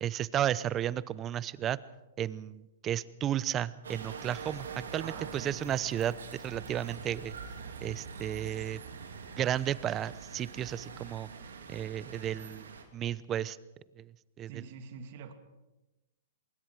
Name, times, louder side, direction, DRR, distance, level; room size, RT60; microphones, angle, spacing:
voice 1, 0.0-1.8 2.2-4.7 4.9-7.3 7.8-8.8 9.4-11.3 11.7-13.6 14.0-14.1 14.4-14.5, right 11 dB, 25° right, 19 dB, 0.8 m, -33 dB
sound 1, 3.8-12.8, right 5 dB, 85° right, 3.2 m, -44 dB
voice 2, 5.0-5.6 14.5-15.3, right 7 dB, 55° right, 7 dB, 2.6 m, -45 dB
25.0 x 22.0 x 4.8 m, 1.0 s
hypercardioid pair, 125°, 0 cm